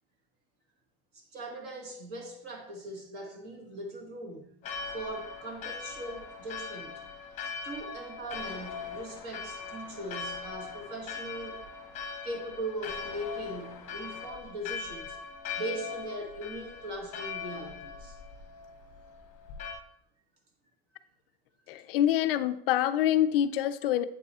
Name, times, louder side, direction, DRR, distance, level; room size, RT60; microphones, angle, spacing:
voice 1, 1.1-4.5 4.9-7.0 7.6-11.6 12.2-15.2 15.6-18.2, right 1 dB, 30° right, 2 dB, 1.3 m, -40 dB
Church bell, 4.6-19.7, left 5 dB, 25° left, 1.1 m, -40 dB
voice 2, 21.7-24.0, left 11 dB, 65° left, 11 dB, 0.5 m, -26 dB
8.4 x 3.6 x 4.1 m, 0.70 s
supercardioid pair, 165°, 31 cm